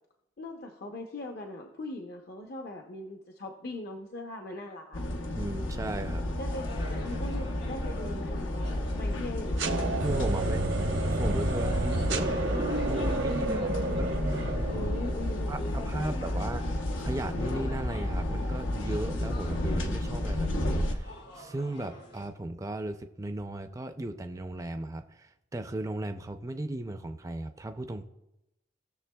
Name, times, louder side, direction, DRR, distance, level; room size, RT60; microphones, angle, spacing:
voice 1, 0.4-5.0 6.4-10.6 14.7-16.4, left 2 dB, 50° left, 2 dB, 0.7 m, -41 dB
sound 1, 4.9-20.9, left 1 dB, 85° left, 1.0 m, -32 dB
voice 2, 5.3-6.3 10.0-10.7 11.1-14.1 15.5-16.6 17.0-28.1, right 1 dB, 15° right, 7 dB, 0.4 m, -36 dB
sound 2, 6.2-22.3, equal, 65° left, 2.7 m, -48 dB
sound 3, 9.6-15.5, right 2 dB, 75° right, 0.9 m, -30 dB
17.5 x 6.7 x 2.3 m, 0.91 s
head